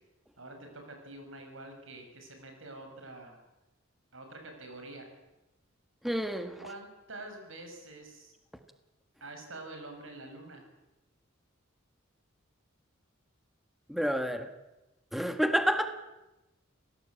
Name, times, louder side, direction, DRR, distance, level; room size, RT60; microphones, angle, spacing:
voice 1, 0.4-3.4 4.1-5.1 6.6-8.3 9.2-10.6, right 2 dB, 65° right, 4 dB, 6.2 m, -46 dB
voice 2, 6.0-6.5 13.9-14.5 15.1-15.9, equal, ahead, 7 dB, 1.6 m, -28 dB
27.5 x 18.0 x 8.6 m, 1.0 s
head